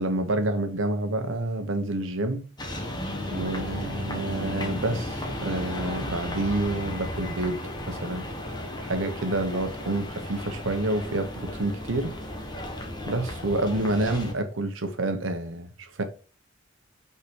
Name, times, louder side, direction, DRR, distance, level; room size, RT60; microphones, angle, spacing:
voice 1, 0.0-2.5 3.3-8.3 8.8-12.1 13.1-16.0, right 2 dB, 80° right, 1.1 m, -28 dB
sound 1, 2.6-14.3, left 1 dB, 20° left, 1.3 m, -34 dB
5.6 x 4.9 x 4.7 m
head